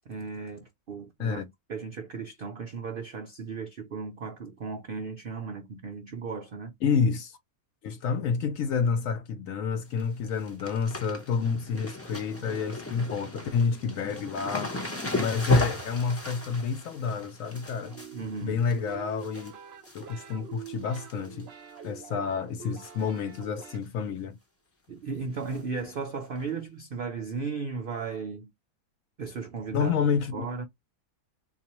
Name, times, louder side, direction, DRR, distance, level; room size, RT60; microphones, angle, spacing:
voice 1, 0.1-6.7 18.1-18.7 24.9-28.5 29.2-30.0 30.3-30.6, right 4 dB, 90° right, 0.4 m, -36 dB
voice 2, 6.8-7.4 7.8-14.7 15.2-18.0 18.4-19.5 19.9-21.5 21.8-24.4 29.7-30.5, left 6 dB, 70° left, 0.9 m, -29 dB
sound 1, 9.7-10.0 10.3-19.5 19.8-20.3 20.6-21.4 21.8-21.9 22.8-23.1 23.3-23.4 23.8-23.9 25.5-25.6 26.4-26.5, equal, 20° left, 0.4 m, -34 dB
sound 2, 17.8-23.8, right 8 dB, 55° right, 0.7 m, -45 dB
4.0 x 2.5 x 2.9 m
omnidirectional pair, 1.8 m